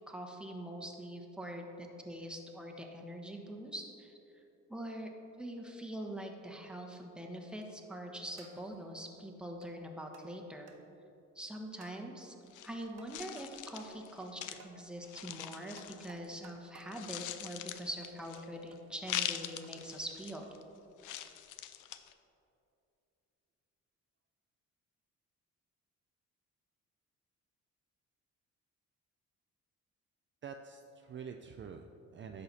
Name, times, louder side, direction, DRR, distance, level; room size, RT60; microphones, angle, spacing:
voice 1, 0.1-4.2 4.7-5.1 5.4-10.7 11.3-12.3 12.6-20.5, right 1 dB, 5° right, 2 dB, 1.1 m, -44 dB
sound 1, 7.5-7.8 8.4-8.8 9.6-9.7 10.1-10.3 10.7-10.8 11.8-12.0 13.0-13.5 13.8-13.9 14.6-14.7 15.8-16.9 18.0-18.8 19.6-19.7 20.4-20.6, right 4 dB, 55° right, 1.2 m, -57 dB
sound 2, 12.5-16.5 16.8-18.6 19.0-20.6 21.0-22.1, left 12 dB, 85° left, 0.6 m, -42 dB
voice 2, 30.4-32.4, right 6 dB, 40° right, 5 dB, 0.5 m, -47 dB
10.5 x 6.6 x 4.2 m, 2.8 s
cardioid pair, 90°, 30 cm